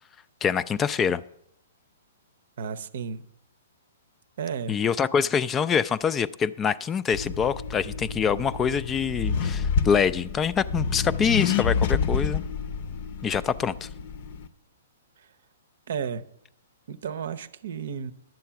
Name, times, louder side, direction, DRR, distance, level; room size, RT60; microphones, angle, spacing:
voice 1, 0.4-1.2 4.7-12.4 13.2-13.9, left 7 dB, 20° left, 16 dB, 0.3 m, -25 dB
voice 2, 2.6-3.3 4.4-4.8 13.3-13.4 15.9-16.3 16.9-18.1, right 7 dB, 65° right, 16 dB, 0.6 m, -33 dB
Accelerating revving vroom, 7.1-14.5, left 5 dB, 55° left, 0.7 m, -29 dB
10.5 x 7.6 x 5.8 m, 0.75 s
hypercardioid pair, 130°, 0 cm